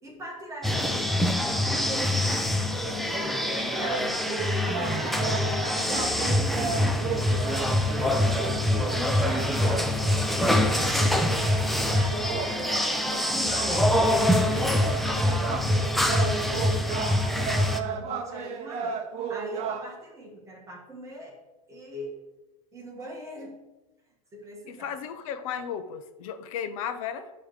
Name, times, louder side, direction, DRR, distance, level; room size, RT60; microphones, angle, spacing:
voice 1, 0.0-1.2 1.6-5.3 5.6-8.7 9.2-15.9 16.2-19.0 19.3-21.4 21.7-22.2 22.7-23.7 24.3-24.9, right 1 dB, 15° right, -2 dB, 1.5 m, -41 dB
sound 1, 0.6-17.8, left 1 dB, ahead, 0.5 m, -25 dB
sound 2, 2.8-19.9, right 6 dB, 35° right, 0.9 m, -35 dB
voice 2, 24.7-27.3, left 8 dB, 65° left, 10 dB, 0.9 m, -34 dB
9.5 x 3.3 x 6.5 m, 1.1 s
supercardioid pair, 140°, 18 cm